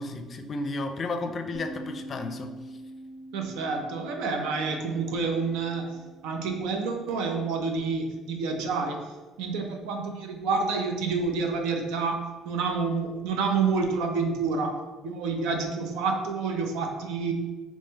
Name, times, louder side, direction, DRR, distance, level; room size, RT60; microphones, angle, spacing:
voice 1, 0.0-2.5, left 2 dB, 45° left, 6 dB, 0.5 m, -33 dB
Bass guitar, 1.5-7.8, right 1 dB, ahead, 1.4 m, -45 dB
voice 2, 3.3-9.1 9.4-14.7 15.0-17.3, right 4 dB, 80° right, 3 dB, 0.6 m, -28 dB
3.6 x 3.1 x 4.1 m, 1.3 s
supercardioid pair, 75°, 0 cm